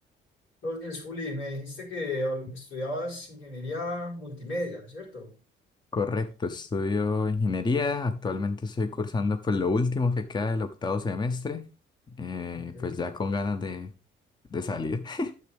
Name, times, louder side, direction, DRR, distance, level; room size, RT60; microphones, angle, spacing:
voice 1, 0.6-5.4 12.5-13.0, left 1 dB, 85° left, 4.2 m, -34 dB
voice 2, 5.9-11.6 12.2-13.9 14.5-15.3, left 3 dB, 20° left, 0.7 m, -28 dB
9.4 x 6.9 x 3.5 m
cardioid pair, 90°, 20 cm